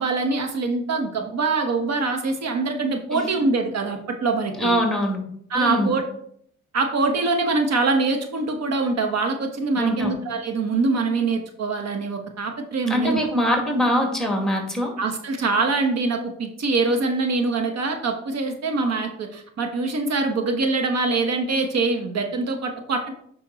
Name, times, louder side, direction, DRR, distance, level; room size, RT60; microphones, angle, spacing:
voice 1, 0.0-4.7 5.5-6.0 6.7-13.2 15.0-23.1, right 3 dB, 60° right, 5 dB, 1.2 m, -24 dB
voice 2, 4.6-5.2 5.5-5.9 9.8-10.1 12.9-14.9, equal, ahead, 2 dB, 2.3 m, -23 dB
8.5 x 5.6 x 4.1 m, 0.67 s
cardioid pair, 90°, 30 cm